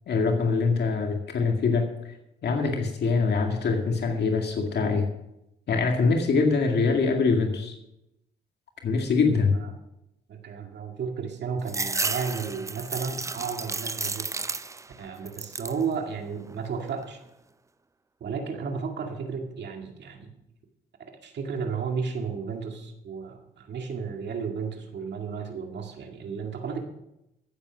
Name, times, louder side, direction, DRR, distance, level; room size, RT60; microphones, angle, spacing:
voice 1, 0.1-1.9 2.4-5.1 5.7-7.8 8.8-9.6, left 4 dB, 55° left, 3 dB, 2.1 m, -24 dB
voice 2, 10.3-14.3 15.0-17.2 18.2-20.3 21.2-26.8, right 5 dB, 60° right, 4 dB, 2.1 m, -33 dB
sound 1, 11.7-15.0 15.3-15.8 16.3-17.0, right 3 dB, 15° right, 0.5 m, -32 dB
16.0 x 8.1 x 6.2 m, 0.87 s
cardioid pair, 90°, 20 cm